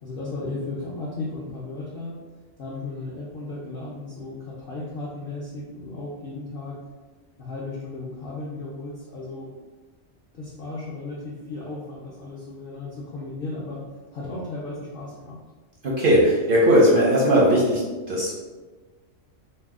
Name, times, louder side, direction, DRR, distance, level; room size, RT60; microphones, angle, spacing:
voice 1, 0.0-2.2 2.6-6.8 7.4-9.5 10.3-13.8 14.1-15.4, left 2 dB, 60° left, -5 dB, 0.6 m, -35 dB
voice 2, 15.8-17.8 18.1-18.3, equal, 60° right, -4 dB, 0.6 m, -18 dB
2.6 x 2.1 x 3.5 m, 1.3 s
omnidirectional pair, 1.4 m